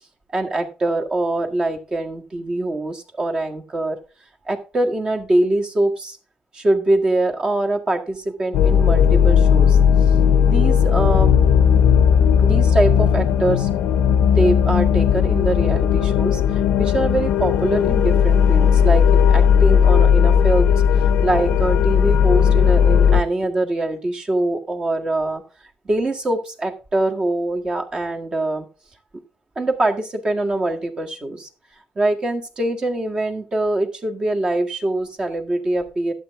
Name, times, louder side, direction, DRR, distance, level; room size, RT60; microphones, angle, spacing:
voice 1, 0.3-4.0 4.4-6.2 6.5-9.8 10.1-10.2 10.4-11.3 12.4-13.7 14.3-25.4 25.8-28.7 29.5-31.5 31.9-36.1, right 2 dB, 30° right, 3 dB, 1.7 m, -23 dB
sound 1, 8.5-23.2, left 8 dB, 80° left, 0.8 m, -16 dB
11.5 x 8.0 x 3.6 m, 0.33 s
cardioid pair, 110°, 3 cm